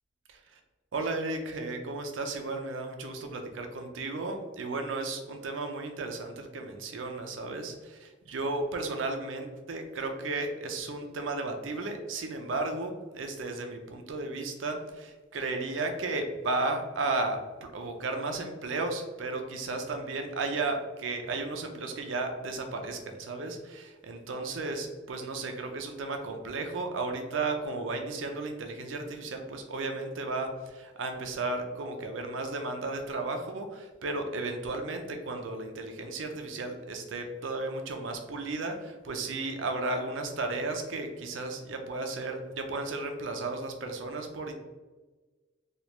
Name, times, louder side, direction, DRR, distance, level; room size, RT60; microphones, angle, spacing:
voice 1, 0.9-44.5, right 3 dB, 80° right, 5 dB, 0.5 m, -34 dB
3.2 x 2.4 x 2.9 m, 1.3 s
head